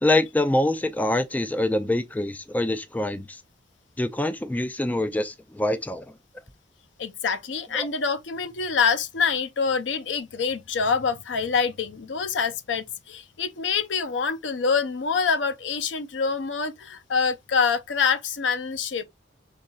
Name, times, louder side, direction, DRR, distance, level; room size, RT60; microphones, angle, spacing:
voice 1, 0.0-3.4 4.0-6.1 7.7-7.9, left 1 dB, 10° left, 0.3 m, -25 dB
voice 2, 7.0-19.0, left 5 dB, 75° left, 0.6 m, -26 dB
5.3 x 3.7 x 2.3 m
head